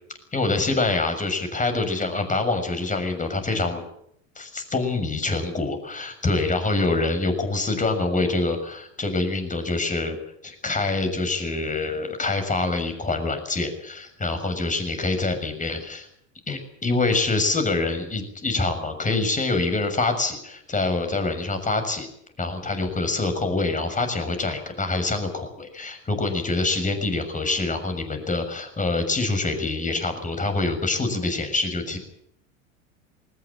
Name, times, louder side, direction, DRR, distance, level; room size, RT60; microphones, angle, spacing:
voice 1, 0.3-3.8 4.4-10.2 10.4-16.1 16.5-22.1 22.4-32.0, left 3 dB, 20° left, 7 dB, 6.8 m, -25 dB
21.0 x 19.0 x 8.9 m, 0.72 s
hypercardioid pair, 95°, 41 cm